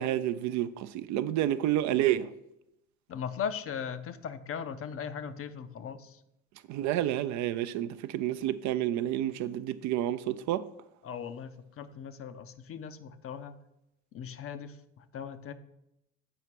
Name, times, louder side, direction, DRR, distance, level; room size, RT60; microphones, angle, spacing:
voice 1, 0.0-2.3 6.7-10.7, right 12 dB, 45° right, 0.5 m, -29 dB
voice 2, 3.1-6.2 11.0-13.5 14.1-15.5, left 7 dB, 35° left, 0.6 m, -38 dB
7.8 x 4.9 x 4.7 m
hypercardioid pair, 65°, 39 cm